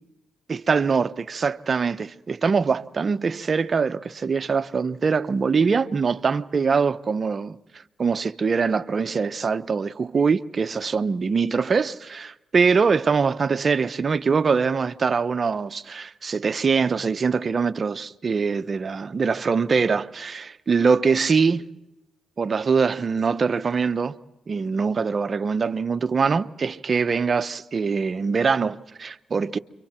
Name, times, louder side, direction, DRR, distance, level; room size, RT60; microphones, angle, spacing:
voice 1, 0.5-21.7 22.4-24.2 24.5-29.6, right 5 dB, 50° right, 0.9 m, -23 dB
29.5 x 24.5 x 4.4 m
supercardioid pair, 60°, 0 cm